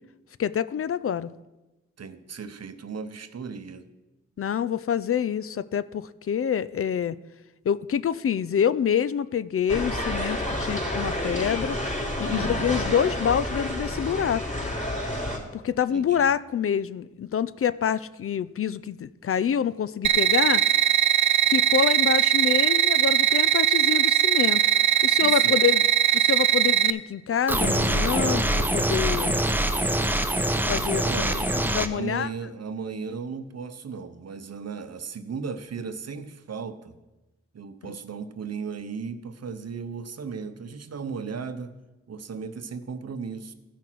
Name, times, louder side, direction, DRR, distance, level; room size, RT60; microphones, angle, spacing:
voice 1, 0.4-1.3 4.4-7.2 7.7-11.8 12.2-14.5 15.5-20.6 21.5-24.6 25.0-25.8 26.1-29.4 30.7-31.4 31.7-32.3 37.9-38.0, left 8 dB, 50° left, 17 dB, 0.4 m, -26 dB
voice 2, 2.0-3.9 12.3-12.7 15.9-16.3 25.2-25.6 31.0-31.4 31.9-36.9 37.5-41.8 42.1-43.5, right 5 dB, 60° right, 10 dB, 0.8 m, -36 dB
sound 1, 9.7-15.4, left 1 dB, 25° left, 3.6 m, -29 dB
sound 2, 20.0-26.9, right 11 dB, 75° right, 0.5 m, -20 dB
sound 3, 27.5-31.9, right 1 dB, 5° right, 0.7 m, -24 dB
14.0 x 5.8 x 4.6 m, 1.1 s
cardioid pair, 50°, 29 cm